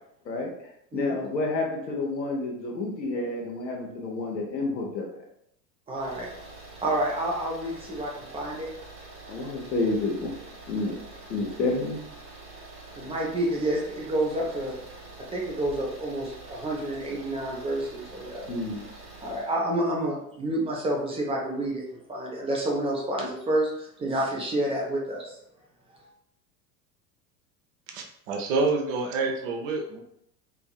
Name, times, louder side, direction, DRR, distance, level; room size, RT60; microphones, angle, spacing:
voice 1, 0.9-5.2 9.3-10.3 10.7-11.0 11.3-12.0 18.5-18.8, left 2 dB, 85° left, 0 dB, 0.9 m, -29 dB
voice 2, 5.9-6.3 6.8-8.7 13.0-14.7 15.3-18.6 19.2-25.4 25.9-26.1, right 1 dB, 10° right, -2 dB, 0.5 m, -29 dB
sound 1, 5.9-19.6, right 3 dB, 30° right, 1.1 m, -46 dB
voice 3, 27.9-30.0, right 3 dB, 50° right, 3 dB, 0.7 m, -28 dB
3.1 x 2.6 x 2.2 m, 0.73 s
figure-of-eight pair, 80°, 49 cm